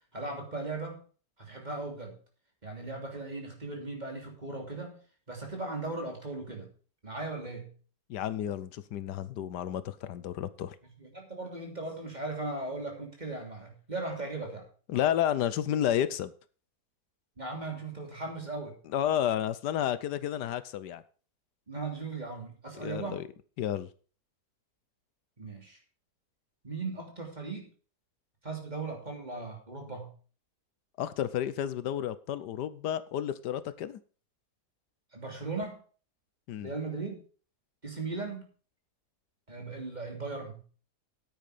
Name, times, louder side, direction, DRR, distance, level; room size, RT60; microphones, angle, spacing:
voice 1, 0.1-1.0 1.4-2.2 2.6-5.0 5.3-6.7 7.0-7.7 11.0-14.7 17.4-18.8 21.7-23.3 25.4-25.8 26.6-27.7 28.4-30.1 35.1-35.8 36.6-37.2 37.8-38.5 39.5-40.6, right 3 dB, 25° right, 2 dB, 3.1 m, -38 dB
voice 2, 8.1-10.7 14.9-16.3 18.9-21.0 22.8-23.3 23.6-23.9 31.0-34.0 36.5-36.7, left 10 dB, 85° left, 15 dB, 1.4 m, -31 dB
9.6 x 9.3 x 5.0 m, 0.39 s
omnidirectional pair, 1.7 m